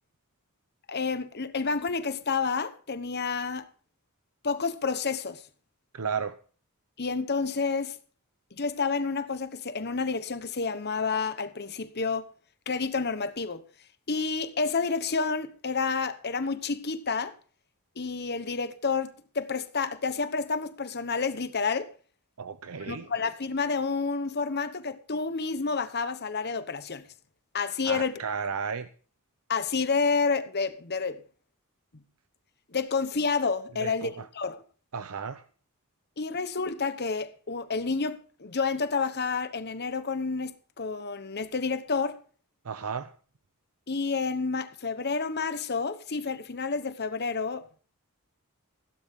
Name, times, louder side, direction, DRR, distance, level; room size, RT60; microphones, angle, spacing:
voice 1, 0.9-3.7 4.4-5.4 7.0-8.0 8.6-12.3 12.7-13.6 14.1-17.3 18.0-21.9 22.9-27.1 27.5-28.2 29.5-31.2 32.7-34.6 36.2-42.2 43.9-47.8, left 4 dB, 50° left, 1.1 m, -29 dB
voice 2, 5.9-6.4 22.4-23.1 27.8-28.9 33.8-34.3 34.9-35.4 42.6-43.1, right 6 dB, 80° right, 0.7 m, -33 dB
16.0 x 12.0 x 3.7 m
head